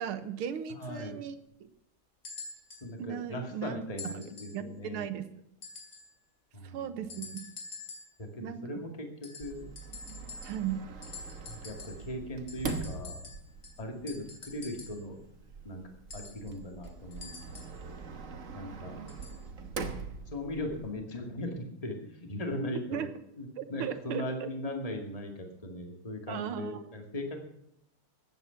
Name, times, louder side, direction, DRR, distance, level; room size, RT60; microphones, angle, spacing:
voice 1, 0.0-1.4 3.0-4.3 4.5-5.3 6.6-7.4 8.4-8.8 10.4-10.8 22.9-23.1 23.6-24.5 26.3-27.0, right 9 dB, 80° right, 11 dB, 1.9 m, -37 dB
voice 2, 0.7-1.2 2.8-5.1 6.5-7.1 8.2-9.6 11.5-13.2 13.8-15.2 15.6-15.8 16.1-17.6 18.5-19.0 20.3-23.1 23.4-27.4, left 1 dB, 15° left, 3 dB, 2.1 m, -39 dB
sound 1, 2.2-2.9 4.0-4.6 5.6-6.2 7.1-8.2 9.2-10.8 11.0-12.1 12.5-15.1 16.1-17.8 19.1-19.4 20.3-20.4, left 4 dB, 50° left, 3.7 m, -47 dB
Sliding door, 9.4-20.9, right 4 dB, 45° right, 1.3 m, -43 dB
14.5 x 9.7 x 5.8 m, 0.78 s
omnidirectional pair, 2.4 m